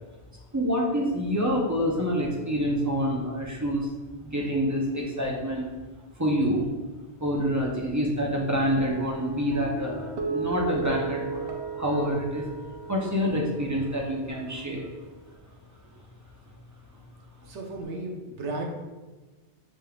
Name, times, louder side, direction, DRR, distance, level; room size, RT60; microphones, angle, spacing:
voice 1, 0.5-3.9 4.2-5.7 6.2-6.6 7.2-12.5 12.9-14.9, equal, 30° right, -2 dB, 0.3 m, -27 dB
sound 1, 8.8-15.4, right 5 dB, 60° right, 0.8 m, -36 dB
voice 2, 17.4-18.6, right 2 dB, 90° right, 1 dB, 1.0 m, -34 dB
5.1 x 3.4 x 2.3 m, 1.3 s
omnidirectional pair, 1.1 m